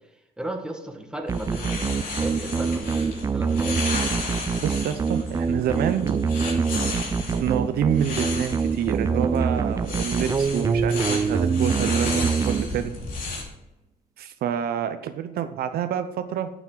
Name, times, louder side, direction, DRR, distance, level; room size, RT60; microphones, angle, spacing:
voice 1, 0.4-3.8, right 1 dB, 5° right, 2 dB, 1.6 m, -35 dB
sound 1, 1.3-13.4, left 3 dB, 55° left, 3.3 m, -34 dB
sound 2, 1.3-13.1, right 5 dB, 20° right, 0.4 m, -25 dB
voice 2, 4.6-6.4 7.3-13.0 14.2-16.5, right 9 dB, 65° right, 9 dB, 0.7 m, -28 dB
12.0 x 7.1 x 3.9 m, 0.98 s
cardioid pair, 110°, 17 cm